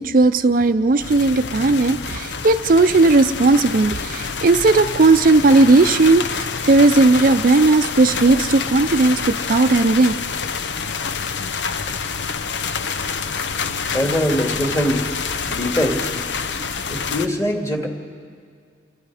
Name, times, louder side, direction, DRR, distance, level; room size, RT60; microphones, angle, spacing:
voice 1, 0.0-10.1, right 3 dB, 50° right, 9 dB, 0.5 m, -16 dB
sound 1, 1.0-17.3, left 5 dB, 85° left, 0.8 m, -27 dB
voice 2, 13.9-15.0 15.5-16.1 16.9-17.9, equal, 20° left, 2 dB, 2.3 m, -22 dB
29.0 x 22.5 x 4.9 m, 2.1 s
head